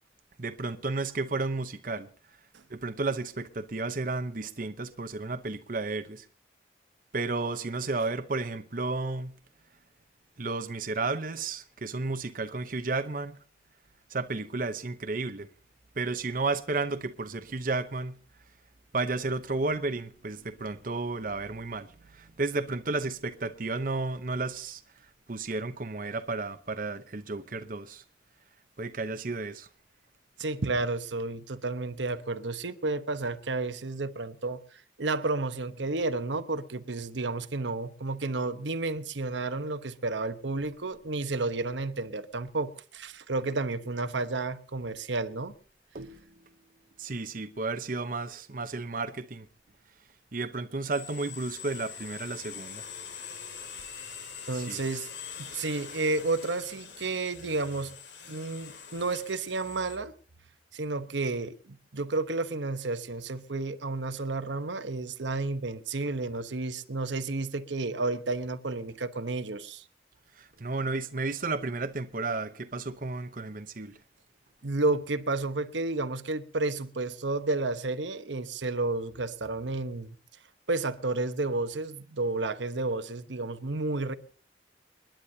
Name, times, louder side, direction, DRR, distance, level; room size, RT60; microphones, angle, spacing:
voice 1, 0.4-2.1 2.7-6.3 7.1-9.3 10.4-13.3 14.1-15.5 16.0-18.1 18.9-24.8 25.3-28.0 28.8-29.7 45.9-46.5 47.0-49.5 50.3-52.9 54.5-54.8 70.4-74.0, right 3 dB, 50° right, 0.8 m, -32 dB
voice 2, 30.4-34.6 35.0-45.5 54.5-55.1 55.5-57.9 58.3-60.1 60.7-69.8 74.6-80.1 80.7-84.1, right 3 dB, 90° right, 1.0 m, -31 dB
sound 1, 50.9-60.0, left 7 dB, 85° left, 2.5 m, -44 dB
29.5 x 10.5 x 2.8 m
head